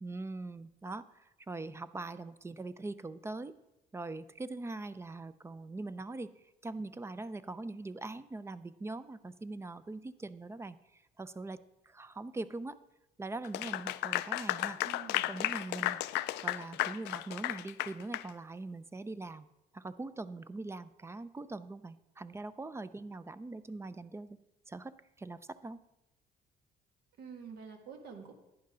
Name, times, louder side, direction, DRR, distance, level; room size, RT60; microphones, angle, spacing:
voice 1, 0.0-3.5 3.9-11.6 11.8-12.8 13.2-14.8 15.3-16.0 16.4-19.5 19.7-24.4 24.7-24.9 25.2-25.8, right 2 dB, 15° right, 14 dB, 0.4 m, -42 dB
Clapping / Applause, 13.4-18.3, left 17 dB, 85° left, 0.4 m, -34 dB
voice 2, 14.8-15.3 27.2-28.3, right 6 dB, 70° right, 3 dB, 2.0 m, -47 dB
11.0 x 10.0 x 3.8 m, 0.93 s
cardioid pair, 110°, 17 cm